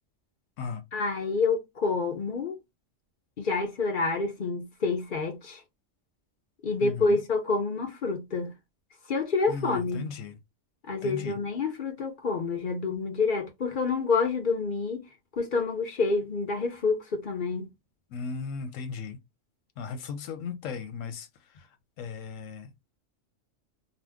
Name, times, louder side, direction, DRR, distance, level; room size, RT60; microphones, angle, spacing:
voice 1, 0.9-2.6 3.4-5.6 6.6-8.5 9.1-10.1 10.9-15.0 15.4-17.7, left 4 dB, 45° left, 0.9 m, -28 dB
voice 2, 6.8-7.2 9.5-10.4 11.0-11.4 18.1-19.2 19.8-21.3 21.6-21.7 22.0-22.7, left 5 dB, 85° left, 1.1 m, -36 dB
2.8 x 2.1 x 3.4 m
omnidirectional pair, 1.3 m